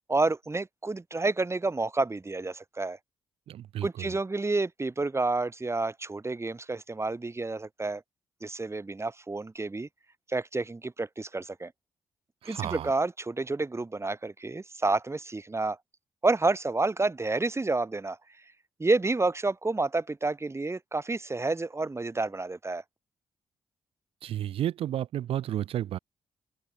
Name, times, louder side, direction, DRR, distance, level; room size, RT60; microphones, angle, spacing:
voice 1, 0.1-3.0 3.8-8.0 8.4-9.9 10.3-11.7 12.5-15.8 16.2-18.2 18.8-22.8, right 3 dB, 25° right, 5.6 m, -29 dB
voice 2, 3.5-4.2 12.4-12.9 24.2-26.0, right 11 dB, 70° right, 6.0 m, -32 dB
open air
hypercardioid pair, 40°, 10 cm